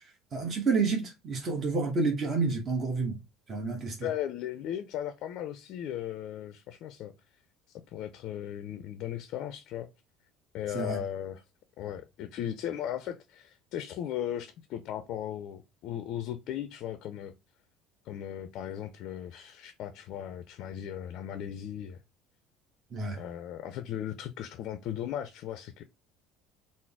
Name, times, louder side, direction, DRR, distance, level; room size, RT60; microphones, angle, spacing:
voice 1, 0.0-3.2 3.5-4.1 10.7-11.0 22.9-23.2, right 4 dB, 40° right, 1.1 m, -29 dB
voice 2, 4.0-7.1 7.7-9.9 10.5-11.4 11.8-17.3 18.0-22.0 23.2-25.8, left 10 dB, 60° left, 0.4 m, -37 dB
3.8 x 2.0 x 3.4 m
hypercardioid pair, 70°, 0 cm